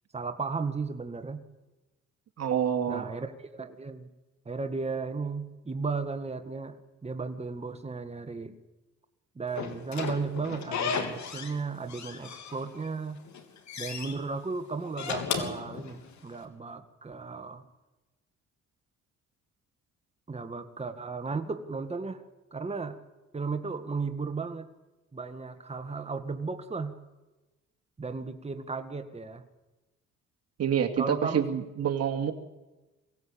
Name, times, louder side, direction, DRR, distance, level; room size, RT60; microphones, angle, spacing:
voice 1, 0.1-1.4 2.9-4.1 4.5-8.6 9.4-13.2 13.8-17.6 20.3-22.2 22.5-23.0 23.3-24.7 25.1-27.0 28.0-29.4 31.0-31.5, right 4 dB, 20° right, 8 dB, 1.7 m, -35 dB
voice 2, 2.4-3.1 30.6-32.3, right 8 dB, 55° right, 6 dB, 2.5 m, -27 dB
Slam / Squeak, 9.6-11.6 11.9-12.9 13.2-14.1 14.8-16.3, left 6 dB, 65° left, 3.1 m, -35 dB
23.0 x 16.5 x 8.7 m, 1.1 s
cardioid pair, 90°, 30 cm